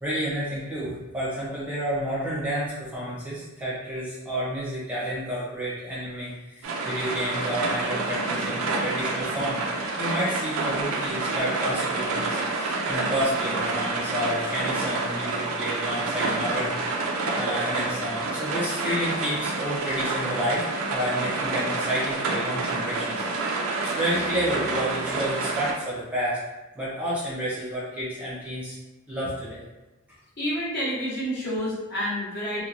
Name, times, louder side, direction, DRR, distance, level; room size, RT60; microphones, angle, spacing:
voice 1, 0.0-9.6 10.0-17.0 17.3-20.6 20.9-26.4 26.8-28.8 29.1-29.6, equal, 5° right, -9 dB, 0.7 m, -30 dB
sound 1, 6.6-25.7, right 3 dB, 75° right, 0.5 m, -28 dB
voice 2, 30.4-32.7, equal, 50° left, -8 dB, 1.1 m, -29 dB
3.0 x 2.2 x 2.6 m, 1.1 s
head